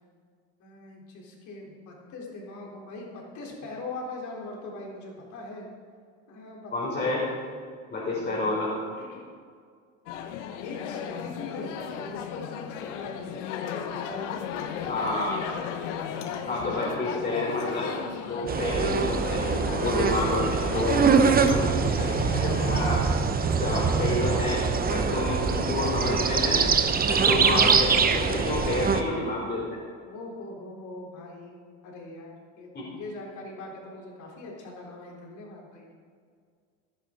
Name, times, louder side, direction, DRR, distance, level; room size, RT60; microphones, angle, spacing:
voice 1, 0.6-5.7 6.3-7.1 8.2-8.4 9.0-9.3 10.6-15.5 30.0-35.9, left 2 dB, 55° left, -1 dB, 3.8 m, -41 dB
voice 2, 6.7-7.3 7.9-8.7 14.9-15.4 16.5-18.0 18.3-23.0 23.5-24.6 24.9-26.7 27.1-29.8 32.7-32.9, left 2 dB, 30° left, -5 dB, 3.5 m, -29 dB
sound 1, 10.1-22.8, left 8 dB, 85° left, 1.0 m, -35 dB
sound 2, 18.5-29.0, right 5 dB, 25° right, 1.0 m, -24 dB
15.5 x 11.0 x 3.9 m, 2.1 s
supercardioid pair, 95°, 35 cm